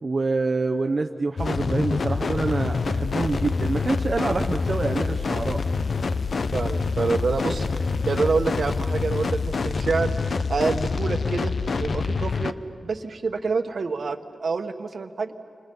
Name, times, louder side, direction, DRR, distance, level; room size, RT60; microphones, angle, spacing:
voice 1, 0.0-6.0, right 3 dB, 45° right, 3 dB, 0.8 m, -26 dB
sound 1, 1.4-12.5, left 4 dB, 65° left, 0.7 m, -26 dB
voice 2, 6.5-7.6 8.1-10.1 10.5-11.5 11.8-12.5 12.8-15.3, right 4 dB, 70° right, 7 dB, 1.3 m, -26 dB
29.5 x 26.5 x 5.5 m, 2.4 s
wide cardioid pair, 90°, 0 cm